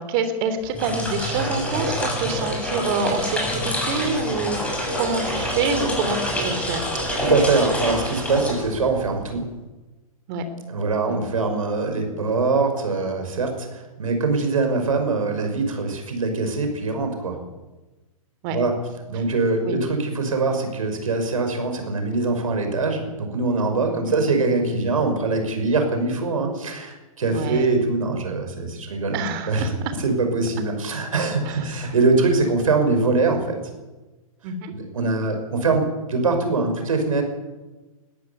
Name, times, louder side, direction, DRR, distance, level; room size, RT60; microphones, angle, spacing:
voice 1, 0.0-6.9 10.3-10.4 11.1-11.2 18.4-18.6 19.6-19.8 23.9-24.2 27.3-27.7 29.1-29.9 31.4-31.6 34.4-34.7, right 4 dB, 40° right, 9 dB, 3.3 m, -27 dB
sound 1, 0.6-9.1, equal, 5° left, 6.7 m, -26 dB
voice 2, 7.2-9.5 10.7-17.4 18.5-18.7 19.1-29.7 30.0-33.6 34.7-37.2, right 3 dB, 65° right, 5 dB, 5.9 m, -23 dB
21.5 x 14.5 x 8.4 m, 1.1 s
figure-of-eight pair, 115°, 19 cm